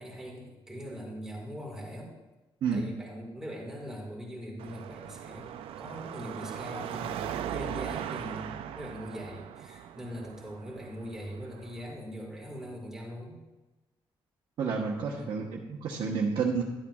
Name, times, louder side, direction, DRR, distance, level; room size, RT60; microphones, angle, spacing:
voice 1, 0.0-2.1 2.7-5.5 5.8-13.4 15.1-15.4, equal, 5° right, -2 dB, 1.9 m, -41 dB
Car passing by / Traffic noise roadway noise / Engine, 4.6-11.9, right 10 dB, 85° right, 0.5 m, -39 dB
voice 2, 14.6-16.6, right 5 dB, 55° right, -2 dB, 1.1 m, -30 dB
11.5 x 11.0 x 2.4 m, 1.1 s
cardioid pair, 160°, 9 cm